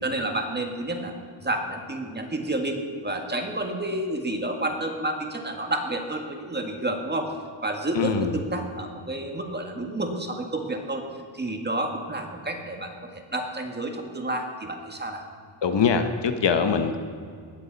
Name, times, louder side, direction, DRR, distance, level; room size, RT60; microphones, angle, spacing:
voice 1, 0.0-1.1 1.4-7.3 7.6-11.0 11.3-15.2, right 1 dB, 20° right, 3 dB, 1.9 m, -30 dB
voice 2, 7.9-8.3 15.6-17.0, left 6 dB, 55° left, 7 dB, 1.2 m, -23 dB
19.5 x 14.0 x 4.1 m, 2.2 s
cardioid pair, 120°, 50 cm